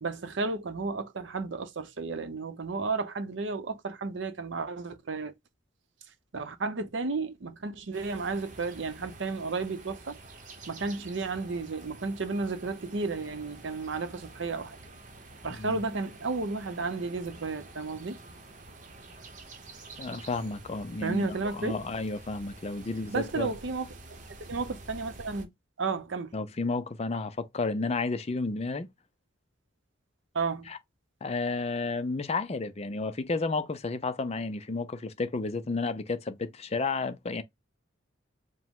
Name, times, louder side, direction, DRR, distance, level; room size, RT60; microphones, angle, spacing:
voice 1, 0.0-5.3 6.3-10.2 10.7-14.8 15.4-18.2 21.0-21.8 23.1-25.5 25.8-26.4 30.3-30.7, right 3 dB, 70° right, 0.7 m, -33 dB
sound 1, 7.9-25.4, right 2 dB, 40° right, 0.8 m, -48 dB
voice 2, 15.4-15.8 20.0-23.5 26.3-28.9 30.7-30.8 31.2-37.4, left 3 dB, 30° left, 0.5 m, -32 dB
5.1 x 2.1 x 3.6 m
head